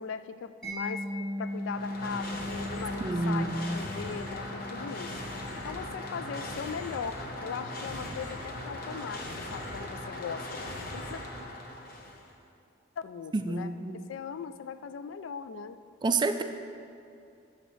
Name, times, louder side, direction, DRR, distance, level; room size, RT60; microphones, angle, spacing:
voice 1, 0.0-5.2 5.6-10.6 10.9-11.2 13.0-13.7 14.1-15.8, left 6 dB, 75° left, 12 dB, 0.3 m, -39 dB
Mallet percussion, 0.6-7.4, left 1 dB, ahead, 1.6 m, -39 dB
sound 1, 1.5-12.3, left 1 dB, 50° left, 0.9 m, -39 dB
voice 2, 3.0-3.8 13.3-14.0 16.0-16.4, right 3 dB, 25° right, 9 dB, 0.3 m, -29 dB
12.0 x 6.4 x 3.1 m, 2.5 s
head